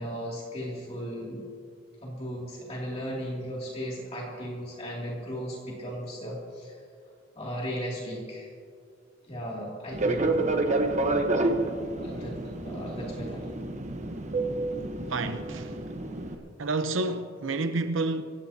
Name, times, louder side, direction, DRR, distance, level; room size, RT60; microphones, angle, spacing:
voice 1, 0.0-1.4 2.0-6.8 7.3-8.5 9.2-10.4 11.9-12.4 12.6-13.4, equal, 30° left, 2.6 m, -36 dB
Fixed-wing aircraft airplane, 9.9-16.3, right 2 dB, 40° right, 1.1 m, -29 dB
voice 2, 15.1-15.8 16.6-18.2, right 3 dB, 80° right, 0.8 m, -29 dB
27.0 x 15.5 x 2.8 m
head